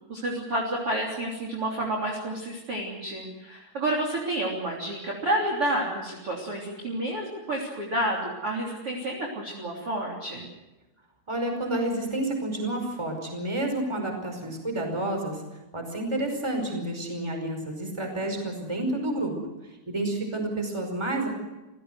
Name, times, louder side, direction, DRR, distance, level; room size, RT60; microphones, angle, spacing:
voice 1, 0.1-10.5, right 1 dB, 30° right, 0 dB, 3.6 m, -30 dB
voice 2, 11.3-15.4 15.7-19.3 19.7-21.3, right 1 dB, 5° right, 4 dB, 4.5 m, -30 dB
28.5 x 16.5 x 8.0 m, 1.1 s
omnidirectional pair, 5.7 m